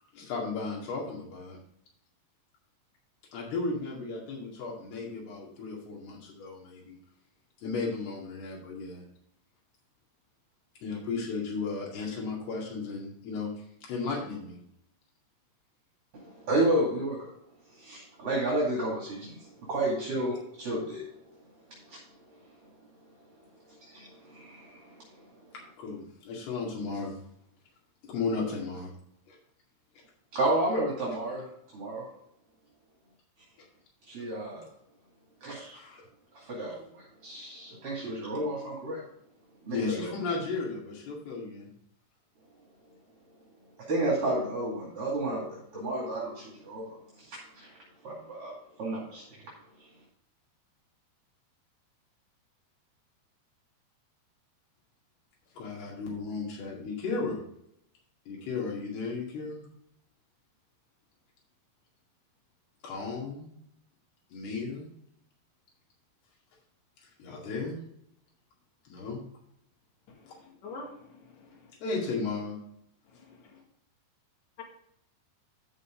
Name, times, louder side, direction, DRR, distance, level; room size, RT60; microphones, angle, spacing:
voice 1, 0.1-1.6 3.3-7.0 7.6-9.0 10.8-13.5 13.8-14.6 25.5-27.2 28.1-28.9 29.3-29.4 35.7-36.0 39.7-41.7 55.5-57.4 58.3-59.7 62.8-63.5 64.3-64.9 67.2-67.8 68.9-69.2 70.3-70.4 71.8-72.6, left 4 dB, 80° left, -3 dB, 4.4 m, -35 dB
voice 2, 16.1-17.3 17.7-21.1 21.9-22.0 23.7-25.2 30.3-32.1 34.0-34.7 35.4-35.8 36.3-39.0 39.6-40.1 43.8-47.7 48.0-49.5 49.8-49.9, right 1 dB, 40° right, -4 dB, 3.0 m, -32 dB
voice 3, 70.4-71.6, left 2 dB, 55° left, -1 dB, 3.5 m, -45 dB
11.0 x 6.5 x 3.8 m, 0.72 s
omnidirectional pair, 4.5 m